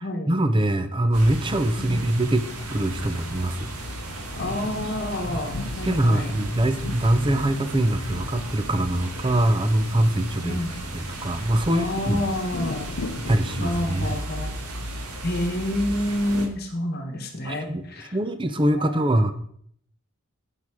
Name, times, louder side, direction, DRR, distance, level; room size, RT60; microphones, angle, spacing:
voice 1, 0.3-3.7 5.3-5.4 5.8-10.6 10.9-12.2 13.2-14.2 17.4-17.8 18.1-19.3, right 1 dB, 20° right, 10 dB, 0.7 m, -23 dB
sound 1, 1.1-16.5, right 1 dB, 85° right, 1.6 m, -35 dB
voice 2, 1.8-2.1 4.4-6.4 10.4-10.8 11.7-12.9 13.6-14.5 15.2-18.2 18.7-19.1, left 1 dB, 45° left, 3 dB, 1.3 m, -28 dB
sound 2, 2.3-14.3, left 3 dB, 70° left, 0.7 m, -39 dB
8.1 x 7.5 x 4.9 m, 0.64 s
head